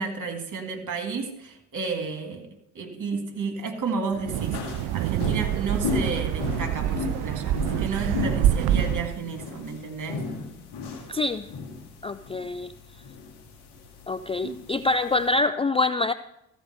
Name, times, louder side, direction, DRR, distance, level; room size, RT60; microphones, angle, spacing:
voice 1, 0.0-2.5 2.7-10.2 14.4-14.6, right 4 dB, 45° right, 5 dB, 2.3 m, -32 dB
Wind, 4.1-9.2, right 12 dB, 60° right, 0.5 m, -26 dB
sound 1, 4.3-15.3, left 5 dB, 70° left, 2.4 m, -35 dB
voice 2, 11.1-11.5 12.0-12.7 14.1-16.1, left 3 dB, 15° left, 12 dB, 0.3 m, -25 dB
14.5 x 5.2 x 6.6 m, 0.85 s
hypercardioid pair, 50°, 41 cm